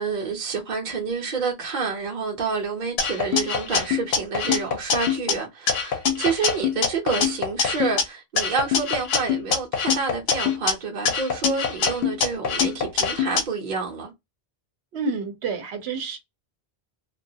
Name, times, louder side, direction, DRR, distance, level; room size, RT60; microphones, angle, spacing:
voice 1, 0.0-14.1, right 5 dB, 50° right, 0.8 m, -28 dB
sound 1, 3.0-5.3 5.7-8.0 8.4-10.7 11.0-13.4, left 6 dB, 70° left, 0.8 m, -24 dB
voice 2, 14.9-16.2, right 4 dB, 80° right, 0.9 m, -29 dB
2.3 x 2.3 x 2.6 m
omnidirectional pair, 1.1 m